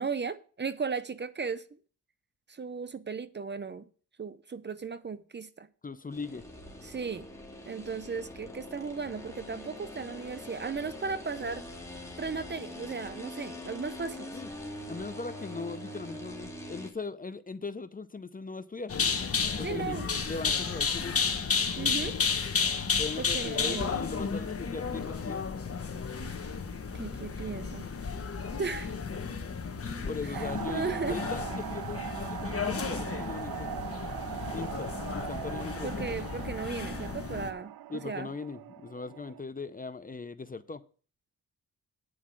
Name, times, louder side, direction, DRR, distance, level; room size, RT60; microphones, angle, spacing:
voice 1, 0.0-1.6 2.5-3.9 4.2-5.7 6.8-7.3 7.7-11.6 12.2-14.4 19.6-20.1 21.8-22.1 23.2-23.9 26.9-27.9 28.6-28.9 30.2-31.2 35.8-38.3, right 5 dB, 30° right, 0.6 m, -36 dB
voice 2, 5.8-6.4 14.3-14.5 14.9-18.9 19.6-21.3 23.0-25.4 29.8-33.7 34.5-36.2 37.9-40.8, left 4 dB, 25° left, 0.6 m, -39 dB
sound 1, 6.1-16.9, left 1 dB, 10° left, 2.2 m, -43 dB
sound 2, 18.9-37.5, left 5 dB, 40° left, 1.4 m, -33 dB
sound 3, 30.3-39.4, right 13 dB, 80° right, 0.5 m, -40 dB
9.6 x 4.9 x 7.4 m
cardioid pair, 85°, 35 cm